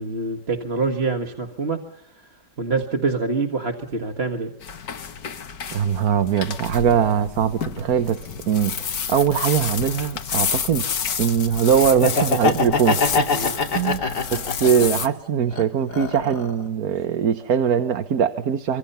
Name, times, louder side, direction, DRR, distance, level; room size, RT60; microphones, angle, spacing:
voice 1, 0.0-2.3 2.6-4.5 13.3-13.5 13.8-14.1, right 3 dB, 40° right, 4 dB, 1.9 m, -26 dB
sound 1, 4.6-15.1, left 7 dB, 65° left, 1.8 m, -30 dB
voice 2, 5.7-8.2 8.5-8.7 9.1-10.9 11.2-13.3 13.7-14.0 14.3-18.8, right 8 dB, 65° right, 9 dB, 1.6 m, -21 dB
Laughter, 11.9-15.1 15.5-16.6, left 4 dB, 85° left, 3.5 m, -23 dB
25.5 x 25.0 x 5.6 m, 0.70 s
omnidirectional pair, 1.7 m